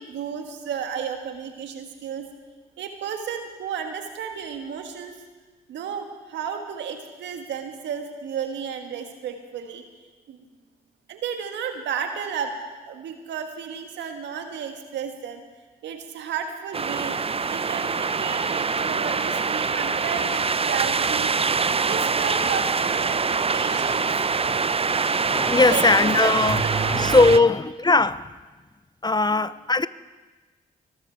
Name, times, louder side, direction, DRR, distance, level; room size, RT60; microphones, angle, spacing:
voice 1, 0.0-2.3 2.8-5.1 5.7-9.8 10.3-10.4 11.1-12.6 12.8-15.4 15.8-17.2 17.4-21.3 21.8-24.3 25.6-27.5 29.3-29.5, right 7 dB, 80° right, 5 dB, 1.6 m, -33 dB
sound 1, 16.7-27.4, right 5 dB, 35° right, 0.7 m, -24 dB
voice 2, 25.2-28.3 29.0-29.9, left 3 dB, 25° left, 17 dB, 0.6 m, -20 dB
21.0 x 13.5 x 4.6 m, 1.3 s
hypercardioid pair, 40°, 18 cm